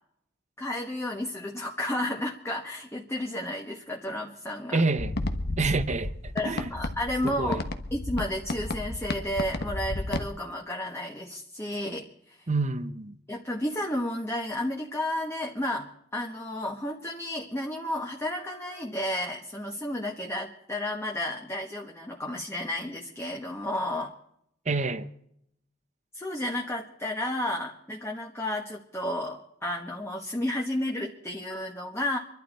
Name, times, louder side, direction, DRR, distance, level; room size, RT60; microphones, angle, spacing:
voice 1, 0.6-4.8 6.3-7.6 7.9-12.4 13.3-15.9 16.1-24.1 26.1-32.2, left 1 dB, 15° left, 1.3 m, -32 dB
voice 2, 4.7-5.1 5.5-6.7 7.2-7.6 12.5-13.2 24.7-25.1, right 3 dB, 35° right, 0.9 m, -28 dB
sound 1, 5.0-10.3, left 2 dB, 55° left, 1.2 m, -33 dB
26.0 x 12.0 x 4.2 m
head